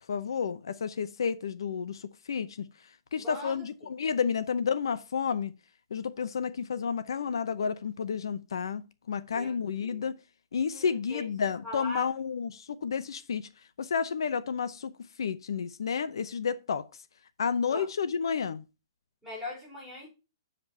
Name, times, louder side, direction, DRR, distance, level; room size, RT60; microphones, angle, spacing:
voice 1, 0.1-2.6 3.1-5.5 5.9-8.8 9.1-10.1 10.5-13.5 13.8-14.9 15.2-16.9 17.4-18.6, left 6 dB, 75° left, 0.7 m, -31 dB
voice 2, 3.2-3.9 9.3-10.1 10.6-12.1 17.7-17.9 19.2-20.1, left 1 dB, ahead, 3.6 m, -41 dB
7.8 x 5.2 x 5.5 m
hypercardioid pair, 175°, 2 cm